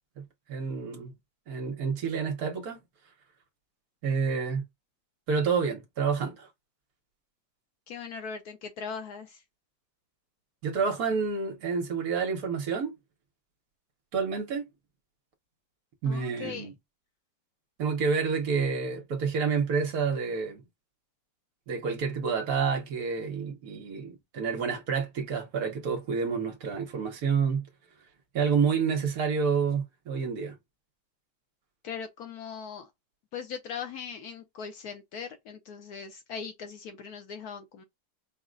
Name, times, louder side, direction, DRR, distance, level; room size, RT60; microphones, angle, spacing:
voice 1, 0.5-1.1 1.5-2.8 4.0-4.6 5.3-6.5 10.6-13.0 14.1-14.7 16.0-16.7 17.8-20.6 21.7-27.6 28.3-30.5, right 5 dB, 60° right, 1.2 m, -29 dB
voice 2, 7.9-9.4 16.0-16.7 31.8-32.9 33.3-37.8, left 6 dB, 70° left, 1.0 m, -39 dB
4.7 x 2.0 x 3.7 m
omnidirectional pair, 2.0 m